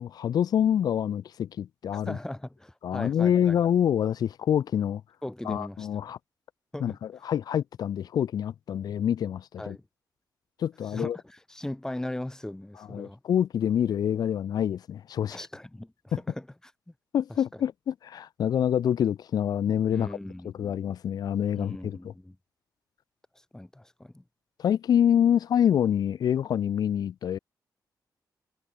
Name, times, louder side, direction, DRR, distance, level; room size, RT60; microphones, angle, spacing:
voice 1, 0.0-2.2 2.8-5.0 5.5-6.2 6.8-9.8 10.6-11.2 12.9-15.4 17.1-20.2 20.4-22.1 24.6-27.4, left 9 dB, 60° left, 0.5 m, -26 dB
voice 2, 1.9-3.6 5.2-5.9 6.7-7.0 9.6-9.8 10.9-13.2 15.3-16.5 16.9-17.0 17.5-17.6 19.9-20.8 21.5-22.4 23.5-24.2, left 1 dB, 5° left, 1.3 m, -38 dB
wide cardioid pair, 170°, 7 cm